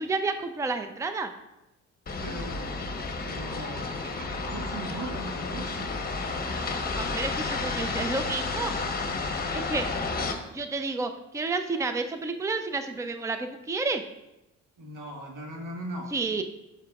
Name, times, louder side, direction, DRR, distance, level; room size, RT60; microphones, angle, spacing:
voice 1, 0.0-1.3 6.9-8.7 9.5-9.9 10.5-14.0 16.1-16.4, right 3 dB, 10° right, 8 dB, 0.5 m, -30 dB
sound 1, 2.1-10.3, left 3 dB, 30° left, 0.9 m, -31 dB
voice 2, 2.2-3.0 3.2-6.0 14.8-16.1, right 1 dB, 90° right, 0 dB, 1.5 m, -39 dB
11.0 x 5.8 x 2.3 m, 0.93 s
cardioid pair, 90°, 30 cm